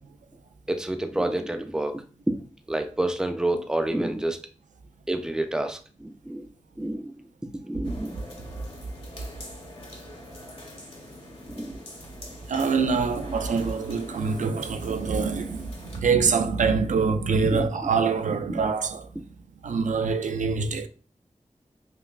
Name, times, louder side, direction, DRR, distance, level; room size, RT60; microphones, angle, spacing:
voice 1, 0.7-2.3 2.7-4.4 5.1-6.5 6.8-7.1 7.5-8.2 11.5-11.8 17.4-17.7 18.5-18.6, right 1 dB, 5° right, 0.4 m, -28 dB
sound 1, 7.8-16.0, left 1 dB, 50° left, 1.1 m, -44 dB
voice 2, 12.5-19.1 19.6-20.9, right 5 dB, 85° right, 0.4 m, -25 dB
5.2 x 2.1 x 2.4 m
wide cardioid pair, 90°, 13 cm